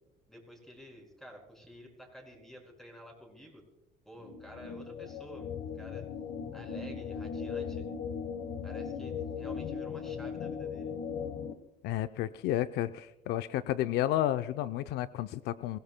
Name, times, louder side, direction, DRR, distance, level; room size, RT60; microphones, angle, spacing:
voice 1, 0.3-3.6 4.0-6.1 6.5-7.8 8.6-10.9, equal, ahead, 2 dB, 5.2 m, -51 dB
sound 1, 4.2-11.5, left 6 dB, 65° left, 1.2 m, -38 dB
voice 2, 11.8-15.8, left 13 dB, 80° left, 11 dB, 0.5 m, -31 dB
24.0 x 17.0 x 2.2 m, 0.95 s
cardioid pair, 110°, 17 cm